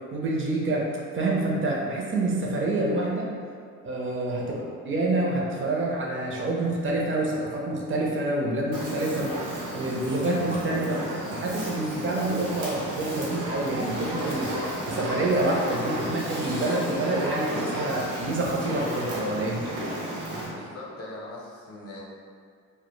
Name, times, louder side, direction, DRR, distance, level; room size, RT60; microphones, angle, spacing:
voice 1, 0.1-0.8 1.1-3.3 3.8-4.6 4.8-9.4 9.7-11.0 11.3-14.5 14.9-19.6, right 2 dB, 40° right, -2 dB, 0.5 m, -27 dB
Fire, 8.7-20.5, right 1 dB, 85° right, 0.7 m, -33 dB
voice 2, 20.5-22.0, left 2 dB, 50° left, -3 dB, 0.6 m, -42 dB
2.1 x 2.0 x 2.9 m, 2.2 s
cardioid pair, 90°, 30 cm